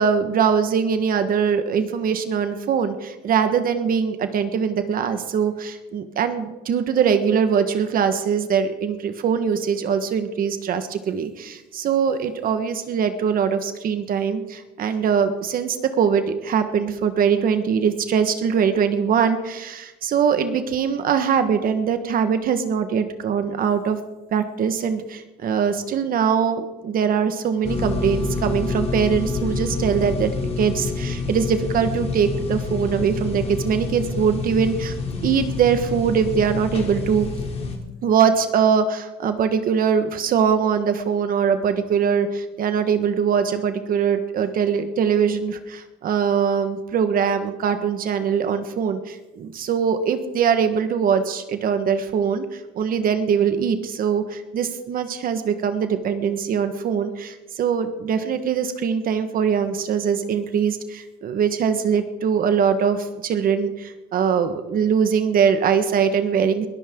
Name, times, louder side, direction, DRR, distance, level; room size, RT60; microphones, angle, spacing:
voice 1, 0.0-24.0 24.3-34.9 35.2-37.3 38.0-66.7, right 7 dB, 55° right, 9 dB, 1.5 m, -22 dB
sound 1, 27.6-37.8, left 4 dB, 35° left, 3.1 m, -27 dB
21.5 x 14.0 x 3.8 m, 1.0 s
cardioid pair, 110°, 17 cm